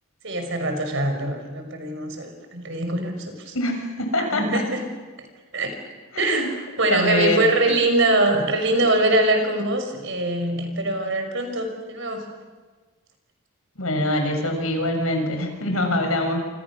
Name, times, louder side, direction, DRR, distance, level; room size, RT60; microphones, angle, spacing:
voice 1, 0.2-3.5 4.2-4.8 5.2-5.3 5.5-5.8 6.2-6.5 6.8-12.3, right 2 dB, 60° right, 5 dB, 5.8 m, -23 dB
voice 2, 3.5-4.6 6.1-6.5 6.9-7.7 13.8-16.4, left 1 dB, 80° left, 4 dB, 6.6 m, -24 dB
28.0 x 27.5 x 6.3 m, 1.4 s
head